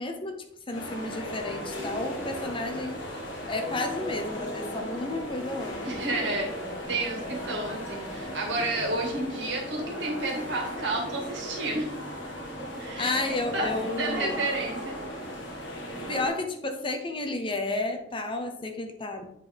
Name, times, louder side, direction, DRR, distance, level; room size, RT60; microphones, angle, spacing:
voice 1, 0.0-3.0 3.5-5.8 13.0-14.4 16.1-19.3, left 2 dB, 30° left, 5 dB, 0.7 m, -32 dB
sound 1, 0.7-16.3, equal, 85° left, 1.8 m, -36 dB
voice 2, 5.8-6.5 6.9-11.9 12.8-13.7 14.0-15.0, right 2 dB, 75° right, 0 dB, 1.9 m, -31 dB
8.0 x 4.5 x 3.5 m, 0.74 s
head